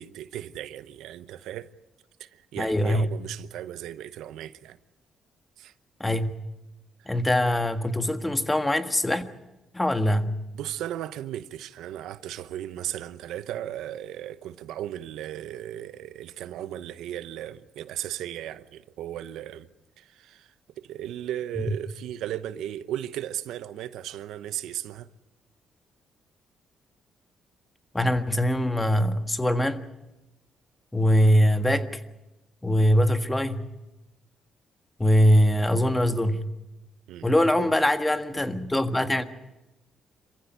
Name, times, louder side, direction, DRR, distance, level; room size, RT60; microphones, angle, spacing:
voice 1, 0.0-1.7 2.2-4.8 5.6-5.7 10.5-19.7 20.0-25.1 37.1-37.5, right 12 dB, 85° right, 0.9 m, -36 dB
voice 2, 2.6-3.1 6.0-6.3 7.0-9.2 9.7-10.3 27.9-29.8 30.9-32.0 32.6-33.7 35.0-36.5 37.2-39.2, equal, 10° left, 1.6 m, -22 dB
27.0 x 15.0 x 9.4 m
cardioid pair, 90°, 0 cm